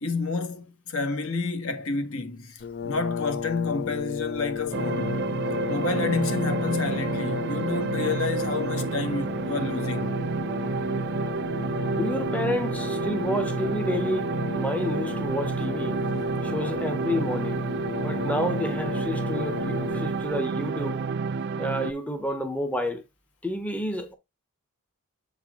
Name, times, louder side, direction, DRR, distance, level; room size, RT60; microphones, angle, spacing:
voice 1, 0.0-5.2 5.7-10.1, left 4 dB, 60° left, 1.3 m, -30 dB
Brass instrument, 2.6-20.4, left 7 dB, 45° left, 0.4 m, -34 dB
sound 1, 4.7-21.9, right 4 dB, 50° right, 0.4 m, -30 dB
voice 2, 11.9-16.0 16.4-17.6 18.0-21.0 21.6-23.0 23.4-24.1, equal, 5° left, 0.7 m, -30 dB
7.5 x 4.2 x 3.5 m
head